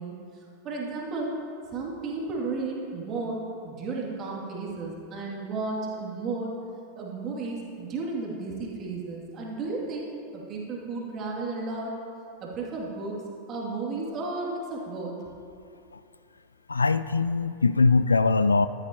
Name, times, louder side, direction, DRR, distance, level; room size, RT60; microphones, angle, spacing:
voice 1, 0.0-1.3 1.7-6.5 6.9-10.1 10.3-11.9 12.4-13.2 13.5-15.2, right 3 dB, 30° right, -3 dB, 2.7 m, -33 dB
voice 2, 16.7-18.7, left 4 dB, 75° left, 14 dB, 0.3 m, -22 dB
14.5 x 12.5 x 3.0 m, 2.5 s
figure-of-eight pair, 90°, 0 cm